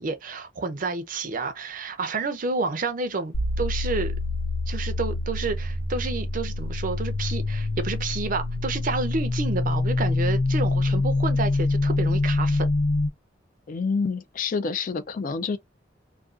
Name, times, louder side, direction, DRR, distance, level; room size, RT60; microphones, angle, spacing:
voice 1, 0.0-4.1 4.7-12.7, right 3 dB, 50° right, 0.5 m, -30 dB
sound 1, 3.3-13.1, left 2 dB, 75° left, 0.7 m, -25 dB
voice 2, 13.7-15.6, left 5 dB, 45° left, 0.3 m, -27 dB
2.4 x 2.3 x 2.3 m
head